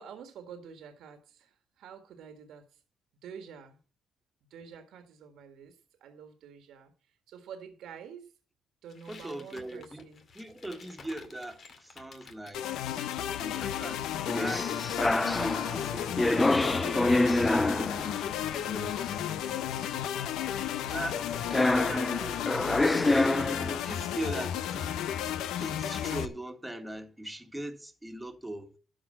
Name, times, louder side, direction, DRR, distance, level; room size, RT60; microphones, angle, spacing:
voice 1, 0.0-2.8 3.2-3.8 4.5-8.3 8.8-10.2, right 7 dB, 80° right, 1.6 m, -48 dB
sound 1, 8.9-12.6, left 5 dB, 55° left, 2.2 m, -53 dB
voice 2, 9.1-10.1 10.3-12.9 13.4-14.1 14.3-14.7 15.0-17.7 18.6-19.3 20.9-21.3 21.7-22.8 23.0-25.1 25.6-28.7, right 1 dB, 5° right, 1.8 m, -40 dB
sound 2, 12.5-26.3, left 10 dB, 90° left, 0.8 m, -33 dB
sound 3, 14.3-18.5 19.0-19.1 21.2-21.3 21.5-23.8, left 2 dB, 15° left, 0.4 m, -26 dB
12.0 x 5.0 x 7.5 m
cardioid pair, 90°, 0 cm